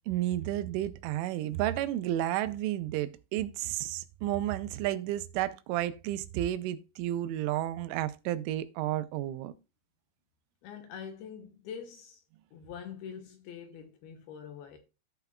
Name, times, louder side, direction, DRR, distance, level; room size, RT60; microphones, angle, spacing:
voice 1, 0.1-9.5, right 13 dB, 90° right, 3.2 m, -32 dB
voice 2, 10.6-12.2 12.5-14.8, left 7 dB, 75° left, 2.4 m, -44 dB
14.5 x 5.8 x 2.3 m
omnidirectional pair, 5.5 m